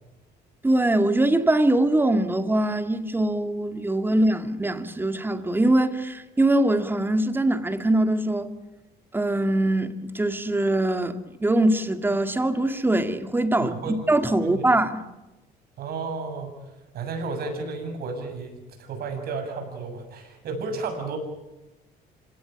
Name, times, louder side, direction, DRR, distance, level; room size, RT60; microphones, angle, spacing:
voice 1, 0.6-8.5 9.1-11.1 11.4-15.0, right 1 dB, 10° right, 2.1 m, -22 dB
voice 2, 13.6-14.0 14.4-14.6 15.8-16.6 16.9-21.2, right 4 dB, 65° right, 7.4 m, -32 dB
27.0 x 17.5 x 9.0 m
cardioid pair, 110°, 17 cm